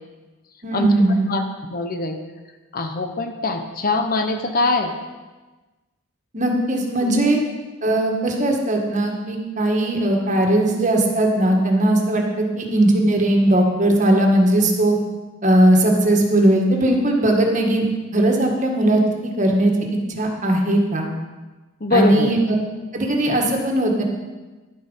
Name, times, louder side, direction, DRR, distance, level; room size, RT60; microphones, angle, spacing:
voice 1, 0.6-1.3 6.3-7.4 7.8-15.0 15.4-17.8 18.1-21.1 21.9-22.5 22.9-24.0, right 1 dB, 35° right, 1 dB, 1.7 m, -18 dB
voice 2, 1.7-2.2 2.7-4.9 7.0-7.3 21.8-22.3, left 2 dB, 45° left, 6 dB, 0.9 m, -22 dB
11.0 x 8.6 x 5.6 m, 1.2 s
head